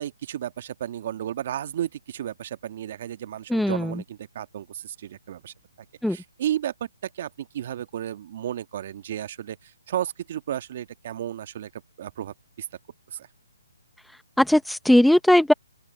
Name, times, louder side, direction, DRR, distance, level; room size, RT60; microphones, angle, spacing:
voice 1, 0.0-5.5 6.1-6.9 7.1-12.7 13.1-13.3, right 11 dB, 45° right, 1.6 m, -33 dB
voice 2, 3.5-3.9 6.0-6.2 14.4-15.5, left 1 dB, ahead, 0.7 m, -18 dB
open air
hypercardioid pair, 150°, 0 cm